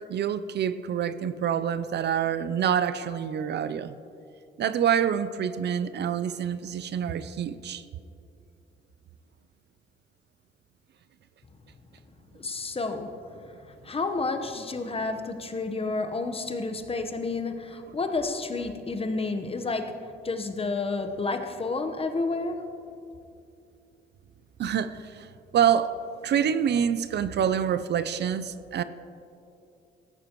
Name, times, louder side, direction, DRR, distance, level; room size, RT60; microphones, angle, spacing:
voice 1, 0.0-4.0 4.6-7.8 24.6-26.0 26.2-28.8, right 8 dB, 60° right, 0.6 m, -26 dB
voice 2, 12.3-13.2 13.7-22.7, left 3 dB, 30° left, 1.1 m, -30 dB
17.0 x 14.5 x 3.0 m
cardioid pair, 90°, 20 cm